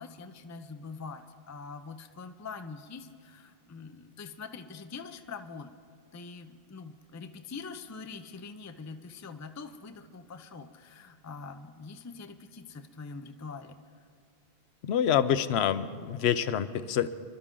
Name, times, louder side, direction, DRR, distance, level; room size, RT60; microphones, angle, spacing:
voice 1, 0.0-5.7 6.1-13.8, left 4 dB, 25° left, 8 dB, 0.4 m, -44 dB
voice 2, 14.8-17.1, left 9 dB, 75° left, 14 dB, 0.9 m, -26 dB
25.0 x 12.5 x 3.8 m, 2.2 s
omnidirectional pair, 1.1 m